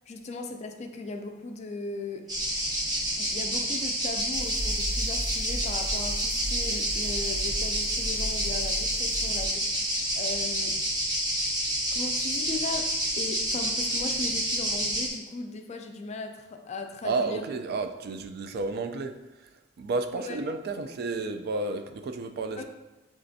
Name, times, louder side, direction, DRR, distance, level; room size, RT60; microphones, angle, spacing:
voice 1, 0.1-2.2 3.2-10.7 11.9-12.9 13.2-17.4 20.2-20.4 22.6-22.7, left 3 dB, 35° left, 4 dB, 0.4 m, -37 dB
sound 1, 2.3-15.1, right 1 dB, 20° right, 0.8 m, -29 dB
sound 2, 4.3-9.5, equal, 90° right, 0.9 m, -35 dB
voice 2, 17.0-19.2 19.8-22.6, right 3 dB, 55° right, 7 dB, 0.3 m, -31 dB
6.4 x 2.5 x 2.6 m, 1.1 s
head